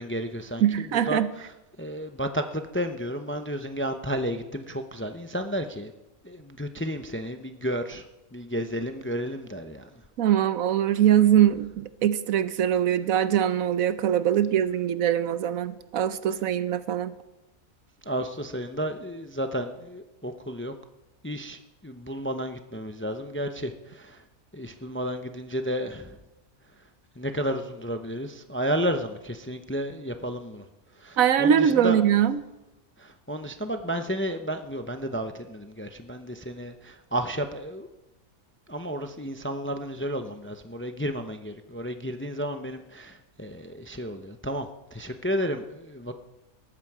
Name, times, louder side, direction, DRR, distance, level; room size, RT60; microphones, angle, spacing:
voice 1, 0.0-1.5 1.8-5.9 6.2-8.0 8.3-9.9 18.1-20.7 21.2-24.2 24.5-26.2 27.2-30.7 30.9-32.0 33.0-37.9 38.7-46.1, equal, 15° left, 7 dB, 0.6 m, -32 dB
voice 2, 0.6-1.3 10.2-17.1 31.2-32.4, right 10 dB, 80° right, 13 dB, 1.2 m, -22 dB
19.0 x 13.5 x 4.8 m, 0.97 s
omnidirectional pair, 1.4 m